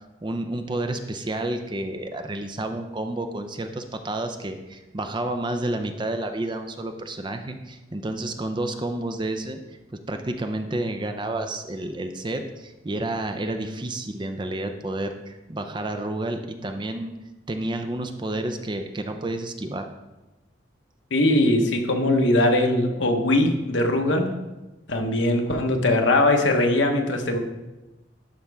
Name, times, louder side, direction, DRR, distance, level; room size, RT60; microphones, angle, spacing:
voice 1, 0.0-9.6 10.1-17.1 17.5-19.9, right 1 dB, 25° right, 6 dB, 0.5 m, -30 dB
voice 2, 21.1-24.3 24.9-27.4, left 1 dB, 70° left, 3 dB, 1.1 m, -21 dB
11.5 x 5.2 x 3.4 m, 1.1 s
head